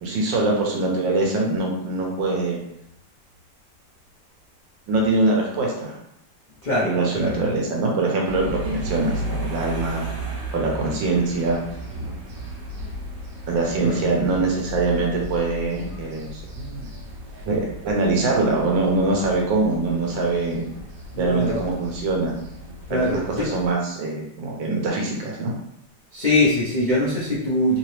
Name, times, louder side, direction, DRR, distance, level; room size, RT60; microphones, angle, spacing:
voice 1, 0.0-2.6 4.9-6.0 6.8-10.0 10.5-11.6 12.0-12.1 13.5-16.8 17.5-20.6 21.2-22.3 22.9-25.5, right 3 dB, 85° right, -1 dB, 1.6 m, -23 dB
voice 2, 6.6-7.4 13.8-14.0 21.1-21.6 22.9-23.5 26.1-27.8, left 1 dB, 70° left, -7 dB, 0.4 m, -22 dB
sound 1, 8.2-23.7, equal, 65° right, 1.5 m, -35 dB
3.7 x 2.9 x 3.1 m, 0.78 s
omnidirectional pair, 2.0 m